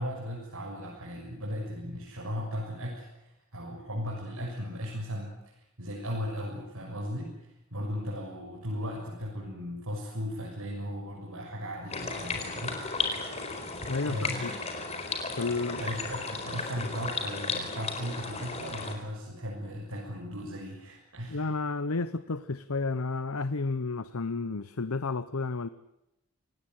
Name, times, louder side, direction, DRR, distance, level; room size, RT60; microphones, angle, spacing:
voice 1, 0.0-13.2 14.1-14.5 15.5-21.5, equal, 80° right, -3 dB, 6.9 m, -37 dB
sound 1, 11.9-18.9, left 4 dB, 30° left, 4.5 m, -34 dB
voice 2, 13.9-14.5 15.4-15.8 21.3-25.7, left 3 dB, 75° left, 14 dB, 0.9 m, -31 dB
27.5 x 19.0 x 9.4 m, 0.86 s
head